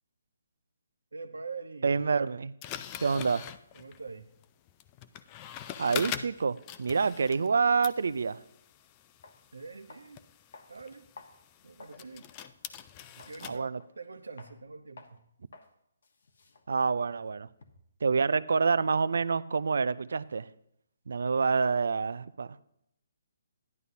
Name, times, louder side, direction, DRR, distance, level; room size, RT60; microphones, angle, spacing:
voice 1, 1.1-1.9 3.7-4.3 9.5-10.2 10.7-11.1 11.6-12.3 13.2-15.2, right 4 dB, 90° right, 9 dB, 0.9 m, -44 dB
voice 2, 1.8-2.5 3.0-3.5 5.8-8.4 13.4-13.8 16.7-17.5 18.0-20.5 21.1-22.6, right 5 dB, 75° right, 16 dB, 0.4 m, -27 dB
sound 1, 2.6-7.6 7.8-13.6, left 11 dB, 25° left, 0.4 m, -43 dB
sound 2, 8.7-8.8 9.2-9.4 9.9-10.2 10.5-12.0 12.4-12.6 13.2-13.4 13.8-14.1 14.4-14.6 15.0-15.2 15.5-15.7 16.0-17.9, left 3 dB, 65° left, 1.2 m, -54 dB
11.0 x 11.0 x 2.8 m, 0.74 s
hypercardioid pair, 150°, 0 cm